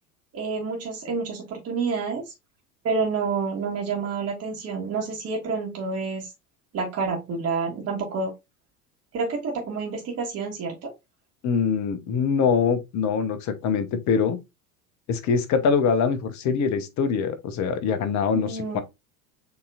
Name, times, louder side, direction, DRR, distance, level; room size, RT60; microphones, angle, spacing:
voice 1, 0.3-2.3 2.8-6.3 6.7-8.3 9.1-10.9 18.3-18.8, right 4 dB, 30° right, 1.4 m, -28 dB
voice 2, 11.4-14.4 15.1-18.8, left 6 dB, 40° left, 1.0 m, -23 dB
6.9 x 2.9 x 2.5 m
figure-of-eight pair, 75°, 46 cm